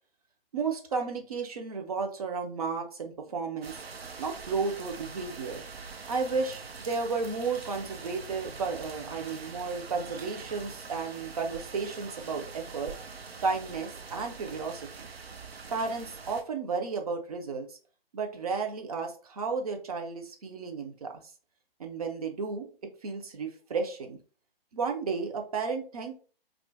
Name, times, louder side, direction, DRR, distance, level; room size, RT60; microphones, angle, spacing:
voice 1, 0.5-3.8 4.2-5.6 6.1-12.9 13.4-15.1 15.7-17.8 18.1-21.2 21.8-22.7 23.0-24.2 24.7-26.2, right 4 dB, 40° right, 4 dB, 0.5 m, -33 dB
sound 1, 3.6-16.4, right 4 dB, 80° right, 0.6 m, -44 dB
2.5 x 2.1 x 3.3 m, 0.38 s
figure-of-eight pair, 135°, 30 cm